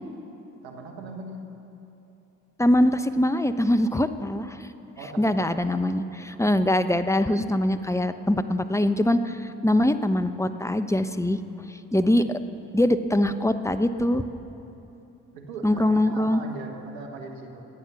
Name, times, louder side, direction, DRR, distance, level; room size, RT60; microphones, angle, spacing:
voice 1, 0.6-1.5 5.0-5.7 12.2-12.3 15.3-17.6, right 3 dB, 85° right, 3 dB, 1.4 m, -39 dB
voice 2, 2.6-4.7 5.2-11.4 11.9-12.2 12.7-14.2 15.6-16.4, left 1 dB, 10° left, 10 dB, 0.9 m, -23 dB
23.5 x 9.2 x 6.1 m, 3.0 s
hypercardioid pair, 40°, 37 cm